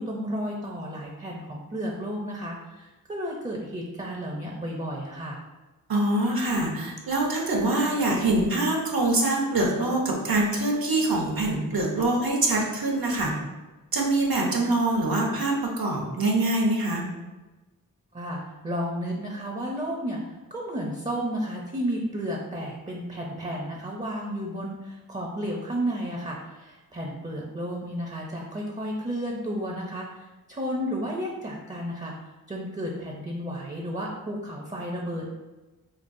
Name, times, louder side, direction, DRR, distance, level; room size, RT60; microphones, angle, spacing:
voice 1, 0.0-5.4 18.1-20.2 20.5-32.1 32.5-35.3, equal, 20° right, -1 dB, 0.5 m, -32 dB
voice 2, 5.9-13.3 13.9-17.0, right 2 dB, 70° right, -1 dB, 0.9 m, -24 dB
5.1 x 2.3 x 2.6 m, 1.2 s
cardioid pair, 40°, 37 cm